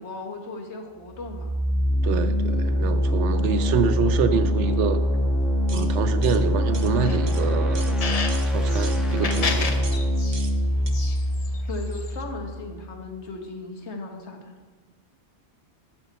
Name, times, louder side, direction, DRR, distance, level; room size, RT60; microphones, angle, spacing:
voice 1, 0.0-1.5 1.9-2.1 11.7-14.6, left 2 dB, 75° left, 3 dB, 1.4 m, -37 dB
sound 1, 1.1-12.9, equal, ahead, 0.8 m, -24 dB
voice 2, 2.0-5.0 5.7-8.0 8.5-9.7, right 6 dB, 90° right, 11 dB, 1.0 m, -26 dB
sound 2, 5.7-5.9 6.2-6.4 6.7-6.9 7.3-7.4 7.7-7.9 8.3-8.5 8.8-9.0 9.3-9.5 9.8-10.0 10.3-10.5 10.9-11.0, right 4 dB, 35° right, 0.4 m, -40 dB
sound 3, 7.0-8.3 8.7-10.5 10.9-12.2, left 4 dB, 40° left, 0.6 m, -32 dB
11.5 x 6.2 x 4.1 m, 1.3 s
omnidirectional pair, 1.2 m